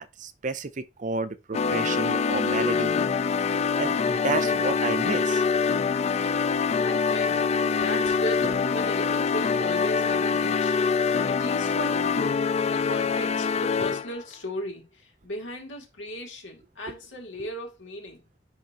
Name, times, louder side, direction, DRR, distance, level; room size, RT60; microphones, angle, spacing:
voice 1, 0.0-2.9 3.8-5.4, right 3 dB, 40° right, 0.5 m, -31 dB
sound 1, 1.5-14.2, left 5 dB, 35° left, 0.3 m, -25 dB
voice 2, 4.2-4.7 6.8-10.8 11.2-12.3 12.7-18.2, equal, 85° left, 2.2 m, -36 dB
10.5 x 3.5 x 2.9 m
head